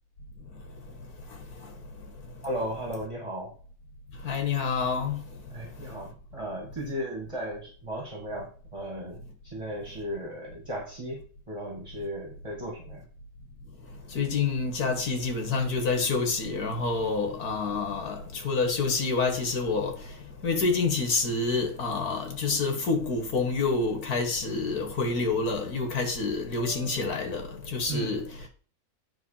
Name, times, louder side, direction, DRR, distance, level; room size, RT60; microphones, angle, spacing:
voice 1, 2.4-3.5 5.5-9.2 9.5-11.2 11.5-13.0 27.9-28.5, equal, 20° right, 2.0 m, -36 dB
voice 2, 4.2-5.2 14.1-20.0 20.4-28.2, left 4 dB, 75° left, 2.2 m, -27 dB
9.6 x 3.9 x 5.7 m
omnidirectional pair, 1.6 m